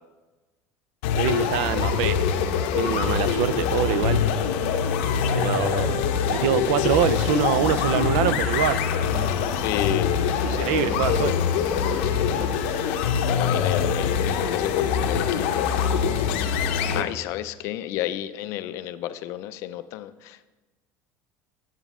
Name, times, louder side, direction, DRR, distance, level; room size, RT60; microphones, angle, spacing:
sound 1, 1.0-17.0, left 7 dB, 85° left, 0.7 m, -24 dB
voice 1, 1.2-2.2 2.7-4.2 5.3-6.0 6.3-8.8 10.5-11.4 16.9-17.1, right 10 dB, 85° right, 14 dB, 0.5 m, -24 dB
voice 2, 5.6-6.5 9.6-15.7 16.9-20.5, left 12 dB, 50° left, 13 dB, 0.4 m, -32 dB
9.0 x 8.0 x 3.7 m, 1.2 s
cardioid pair, 180°, 6 cm